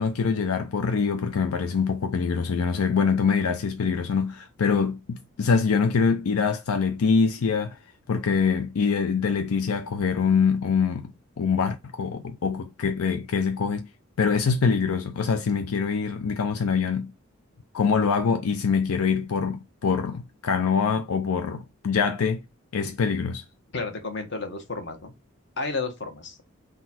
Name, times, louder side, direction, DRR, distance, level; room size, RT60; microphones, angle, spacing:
voice 1, 0.0-7.8 8.1-11.1 11.4-13.9 14.2-17.1 17.7-22.4 22.7-23.4, left 5 dB, 85° left, 0.5 m, -24 dB
voice 2, 23.7-25.1 25.6-26.4, left 3 dB, 55° left, 1.0 m, -32 dB
3.9 x 2.4 x 4.1 m
head